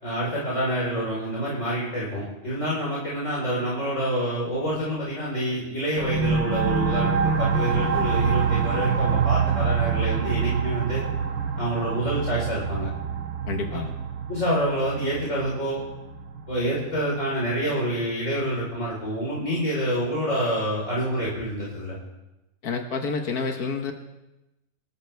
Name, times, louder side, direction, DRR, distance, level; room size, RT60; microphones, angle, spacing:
voice 1, 0.0-11.0 11.6-12.9 14.3-15.8 16.5-22.0, equal, 55° left, -7 dB, 4.7 m, -27 dB
sound 1, 6.0-17.3, right 6 dB, 80° right, 1.7 m, -26 dB
voice 2, 13.5-13.9 22.6-23.9, left 4 dB, 90° left, 4 dB, 1.8 m, -28 dB
27.5 x 13.5 x 3.4 m, 0.98 s
omnidirectional pair, 1.6 m